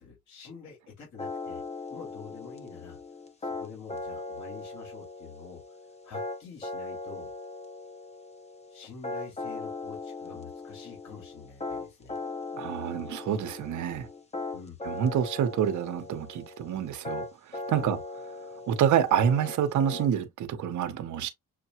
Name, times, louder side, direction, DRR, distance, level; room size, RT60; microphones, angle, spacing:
voice 1, 0.0-1.6 1.9-3.0 3.4-5.8 6.0-7.3 8.7-12.2 14.5-14.8 17.8-18.0, left 6 dB, 65° left, 2.7 m, -47 dB
sound 1, 1.2-20.1, left 3 dB, 20° left, 0.9 m, -39 dB
voice 2, 12.5-14.1 14.8-18.0 18.7-21.3, right 9 dB, 75° right, 1.0 m, -27 dB
6.5 x 2.2 x 3.0 m
cardioid pair, 90°, 30 cm